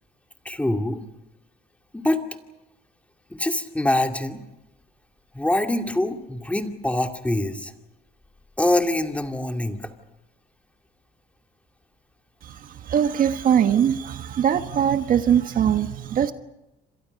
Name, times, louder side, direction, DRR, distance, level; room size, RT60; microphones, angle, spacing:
voice 1, 0.4-1.0 1.9-2.2 3.4-4.4 5.3-7.7 8.6-9.9, left 1 dB, 10° left, 4 dB, 2.4 m, -24 dB
voice 2, 12.4-16.3, right 9 dB, 55° right, 8 dB, 1.4 m, -21 dB
29.0 x 26.5 x 5.4 m, 0.96 s
cardioid pair, 110°, 17 cm